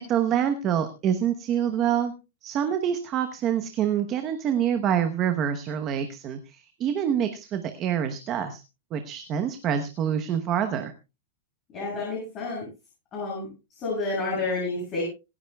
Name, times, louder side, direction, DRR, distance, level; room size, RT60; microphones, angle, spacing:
voice 1, 0.1-2.1 2.4-8.6 8.9-10.9, right 9 dB, 25° right, 7 dB, 1.0 m, -26 dB
voice 2, 11.7-12.7 13.1-13.5 13.8-15.0, left 3 dB, 25° left, -5 dB, 7.6 m, -29 dB
26.5 x 10.0 x 2.3 m, 0.29 s
supercardioid pair, 170°, 0 cm